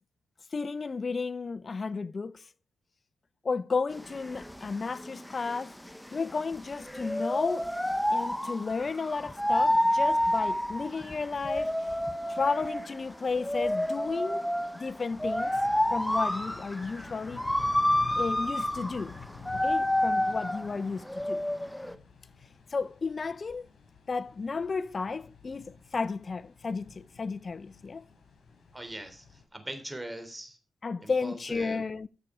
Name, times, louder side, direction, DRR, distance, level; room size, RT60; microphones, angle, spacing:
voice 1, 0.5-2.4 3.4-5.7 6.1-7.7 8.1-11.7 12.3-14.5 14.7-15.6 15.9-17.4 18.2-19.2 19.6-21.4 22.7-23.7 24.1-28.0 30.8-32.1, left 4 dB, 40° left, 0.7 m, -33 dB
sound 1, 3.9-22.0, left 1 dB, 5° left, 0.9 m, -29 dB
sound 2, 15.1-29.4, left 5 dB, 65° left, 6.8 m, -50 dB
voice 2, 28.7-29.2 29.5-30.6 31.0-31.8, right 1 dB, 15° right, 3.2 m, -41 dB
14.0 x 6.8 x 4.9 m
cardioid pair, 70°, 0 cm